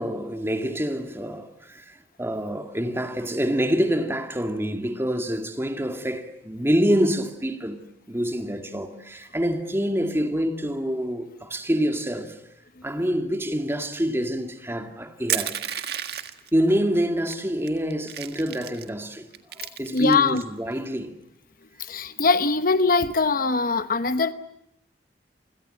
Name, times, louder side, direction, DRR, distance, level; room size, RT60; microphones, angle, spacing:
voice 1, 0.0-12.4 12.8-15.6 16.5-19.3 19.6-21.2, equal, 15° right, 2.3 m, -26 dB
Crushing, 15.3-16.5 17.3-17.4 17.7-18.9 19.3-20.4, right 11 dB, 65° right, 1.8 m, -31 dB
voice 2, 19.9-20.4 21.8-24.3, left 4 dB, 55° left, 1.0 m, -22 dB
29.5 x 25.0 x 7.8 m
head